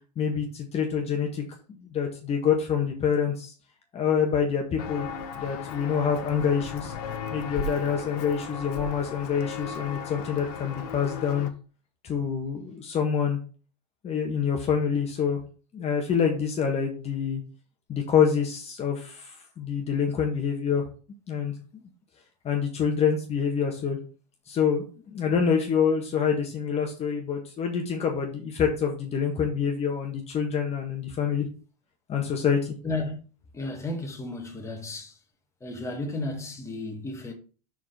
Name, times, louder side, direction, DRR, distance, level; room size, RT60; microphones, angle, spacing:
voice 1, 0.2-1.4 1.9-3.5 3.9-5.1 5.3-6.9 7.3-11.5 12.0-13.4 14.0-15.4 15.7-17.4 17.9-20.9 21.3-21.5 22.4-24.0 24.5-24.8 25.1-31.5 32.1-32.7, left 7 dB, 30° left, 1.6 m, -26 dB
Walk footsteps, 4.8-11.5, left 5 dB, 65° left, 1.4 m, -36 dB
voice 2, 32.8-33.2 33.5-35.2 35.6-37.3, left 2 dB, 15° left, 1.9 m, -33 dB
6.2 x 4.7 x 5.8 m
hypercardioid pair, 110°, 21 cm